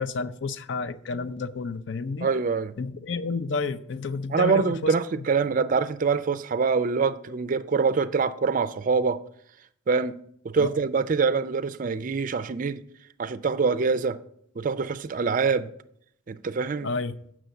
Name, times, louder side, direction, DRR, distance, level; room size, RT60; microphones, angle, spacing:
voice 1, 0.0-2.3 2.8-4.9 10.6-10.7 16.8-17.1, left 4 dB, 60° left, 0.5 m, -30 dB
voice 2, 2.2-2.7 4.3-9.2 9.9-10.2 10.4-12.8 13.2-14.2 14.6-15.7 16.3-16.9, right 5 dB, 40° right, 0.4 m, -25 dB
7.7 x 6.2 x 8.0 m
head